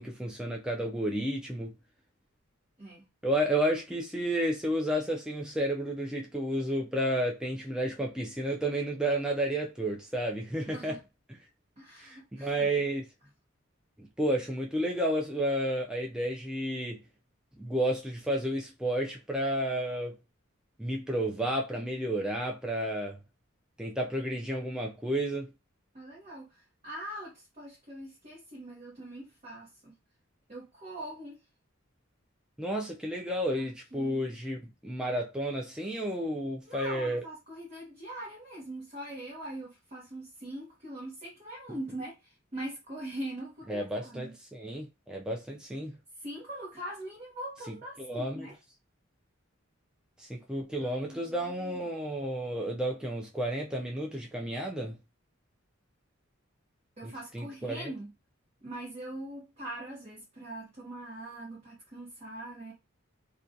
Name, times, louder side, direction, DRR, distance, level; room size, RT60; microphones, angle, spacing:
voice 1, 0.0-1.7 3.2-11.0 12.0-13.1 14.0-17.0 17.6-20.2 20.8-23.2 23.8-25.5 32.6-37.2 43.7-45.9 48.0-48.5 50.2-55.0 57.0-57.9, right 1 dB, 5° right, 0.3 m, -31 dB
voice 2, 10.7-11.0 11.8-12.7 25.9-29.9 30.5-31.4 33.6-33.7 33.9-34.2 36.7-44.3 46.2-48.5 50.8-51.8 57.0-58.1 58.6-62.7, right 1 dB, 35° right, 0.8 m, -42 dB
2.3 x 2.2 x 2.6 m
head